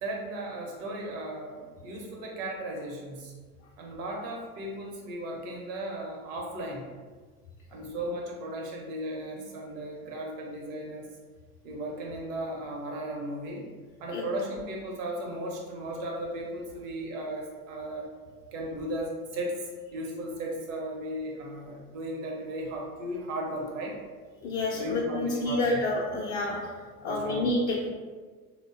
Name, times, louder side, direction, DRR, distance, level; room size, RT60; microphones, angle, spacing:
voice 1, 0.0-3.4 3.8-6.9 7.7-11.1 11.6-13.7 14.0-18.1 18.5-24.0 24.7-25.8 27.0-27.5, right 1 dB, 60° right, 0 dB, 0.8 m, -36 dB
voice 2, 24.4-26.7 27.0-27.9, left 2 dB, 35° left, -4 dB, 0.4 m, -29 dB
3.7 x 2.1 x 2.4 m, 1.5 s
figure-of-eight pair, 70°, 45 cm